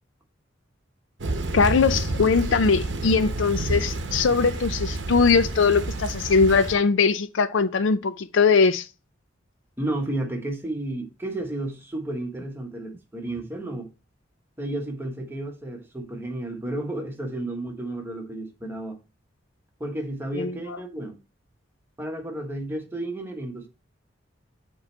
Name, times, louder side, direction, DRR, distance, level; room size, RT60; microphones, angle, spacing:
Thunder / Rain, 1.2-6.7, right 2 dB, 65° right, 0.8 m, -29 dB
voice 1, 1.5-8.9 20.4-20.6, left 5 dB, 75° left, 0.5 m, -21 dB
voice 2, 9.8-13.9 14.6-19.0 19.8-21.2 22.0-23.7, right 1 dB, 10° right, 1.1 m, -32 dB
7.6 x 3.1 x 4.4 m
head